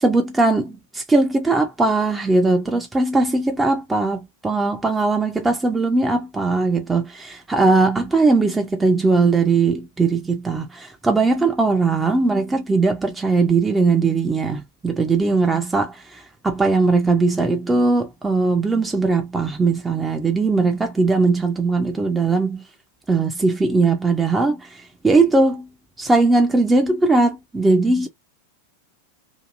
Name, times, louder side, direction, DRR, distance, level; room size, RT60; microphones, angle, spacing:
voice 1, 0.0-15.9 16.4-22.6 23.1-24.6 25.0-25.7 26.0-28.1, right 3 dB, 10° right, 0.5 m, -19 dB
2.8 x 2.5 x 2.4 m
figure-of-eight pair, 90°, 0 cm